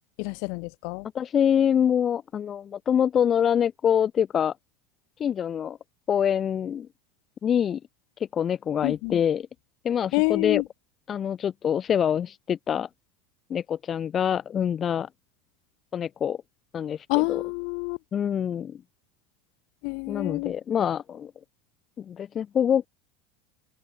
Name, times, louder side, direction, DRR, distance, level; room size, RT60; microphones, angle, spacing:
voice 1, 0.2-1.1 8.8-9.2 10.1-10.6 17.1-18.0 19.8-20.5, left 40 dB or more, 60° left, 6.8 m, -27 dB
voice 2, 1.1-4.5 5.2-5.8 6.1-6.9 7.4-7.8 8.3-9.5 9.8-10.6 11.1-12.9 13.5-15.1 15.9-16.4 16.7-17.4 18.1-18.8 20.1-21.3 22.0-22.9, left 8 dB, 35° left, 1.4 m, -25 dB
open air
hypercardioid pair, 85°, 0 cm